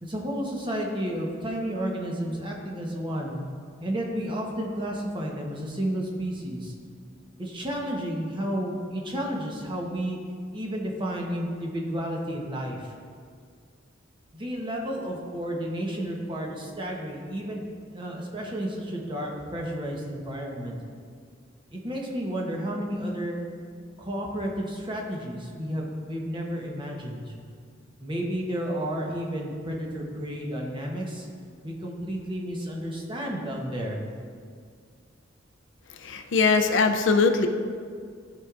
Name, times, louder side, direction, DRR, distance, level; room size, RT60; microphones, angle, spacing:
voice 1, 0.0-3.4 3.8-6.7 7.4-10.2 10.5-12.9 14.3-17.6 17.9-20.7 21.7-23.4 24.0-27.3 28.0-31.3 31.6-34.0, equal, 25° right, -1 dB, 1.0 m, -31 dB
voice 2, 36.0-37.5, left 4 dB, 70° left, 6 dB, 0.5 m, -21 dB
13.0 x 4.7 x 2.5 m, 2.1 s
head